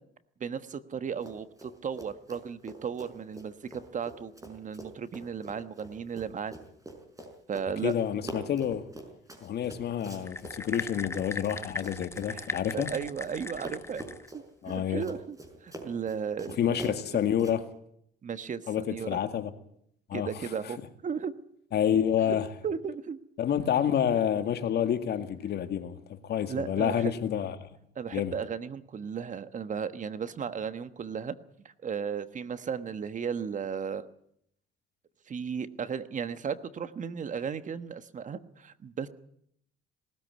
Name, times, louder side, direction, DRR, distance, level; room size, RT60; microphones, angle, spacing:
voice 1, 0.4-6.5 7.5-7.9 12.3-14.0 14.3-16.8 18.2-19.2 20.1-21.3 22.3-22.4 22.6-23.2 26.5-27.1 27.9-31.3 31.8-34.1 35.3-39.1, right 6 dB, 40° right, 1.3 m, -35 dB
Run, 1.2-1.7 2.0-13.3 13.6-17.6, right 2 dB, 15° right, 5.3 m, -45 dB
voice 2, 7.8-8.8 9.4-12.9 14.6-15.0 16.6-17.6 18.7-19.5 20.1-20.3 21.7-22.5 23.4-27.7 28.1-28.3, left 9 dB, 60° left, 2.0 m, -28 dB
sound 1, 10.3-14.3, left 3 dB, 15° left, 1.1 m, -38 dB
19.5 x 13.5 x 9.6 m
cardioid pair, 95°, 19 cm